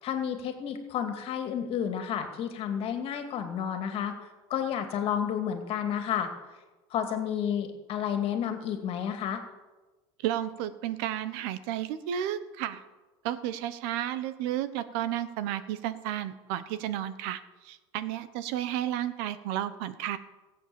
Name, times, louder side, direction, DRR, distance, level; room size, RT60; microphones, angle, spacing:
voice 1, 0.0-4.1 4.5-6.3 6.9-9.4, left 8 dB, 45° left, 6 dB, 2.4 m, -31 dB
voice 2, 10.2-12.8 13.2-20.2, right 11 dB, 75° right, 13 dB, 1.1 m, -32 dB
18.5 x 8.5 x 7.1 m, 1.2 s
cardioid pair, 140°, 13 cm